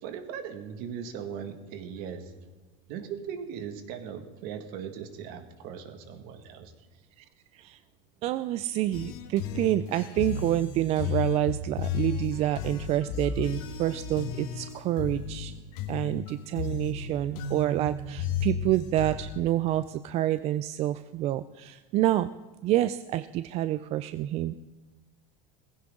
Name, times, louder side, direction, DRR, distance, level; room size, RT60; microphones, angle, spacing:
voice 1, 0.0-2.4 2.9-6.7, right 7 dB, 55° right, 8 dB, 1.8 m, -39 dB
voice 2, 8.2-15.5 15.9-22.3 22.6-24.6, right 13 dB, 35° right, 14 dB, 0.4 m, -28 dB
sound 1, 8.9-19.4, left 6 dB, 55° left, 1.6 m, -34 dB
18.5 x 16.0 x 3.7 m, 1.2 s
supercardioid pair, 145°, 19 cm